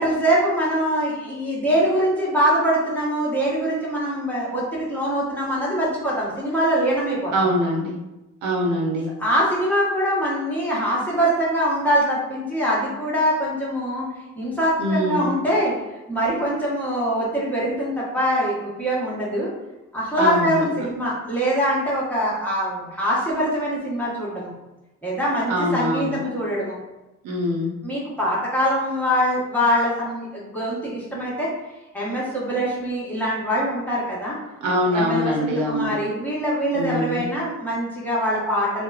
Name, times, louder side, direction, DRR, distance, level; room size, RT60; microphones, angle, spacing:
voice 1, 0.0-7.3 9.2-14.1 14.4-15.7 16.1-19.5 19.9-24.5 25.0-26.8 27.8-31.5 31.9-34.4 34.9-38.8, equal, 5° left, -7 dB, 1.0 m, -23 dB
voice 2, 7.3-8.0 8.4-9.1 14.8-15.3 20.2-20.7 25.5-26.2 27.2-27.7 34.6-35.9 36.7-37.3, equal, 85° right, 0 dB, 0.6 m, -23 dB
3.0 x 2.1 x 2.3 m, 0.99 s
cardioid pair, 90°, 30 cm